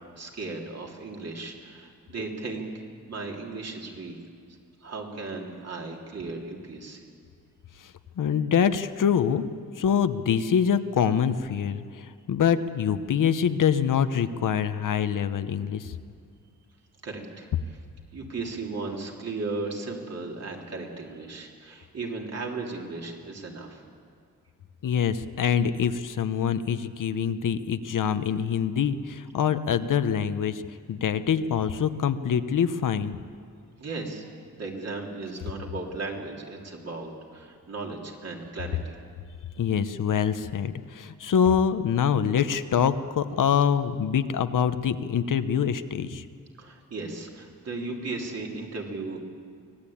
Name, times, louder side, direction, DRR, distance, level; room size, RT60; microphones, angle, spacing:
voice 1, 0.2-2.7 3.1-4.1 4.8-7.0 17.0-17.5 18.1-23.8 33.8-34.3 34.5-38.9 46.6-49.2, right 3 dB, 50° right, 0 dB, 3.0 m, -36 dB
voice 2, 7.8-9.5 9.7-15.9 24.8-30.6 30.9-33.2 39.6-46.2, left 8 dB, 65° left, 11 dB, 0.9 m, -25 dB
24.5 x 17.5 x 8.6 m, 2.1 s
wide cardioid pair, 175°, 33 cm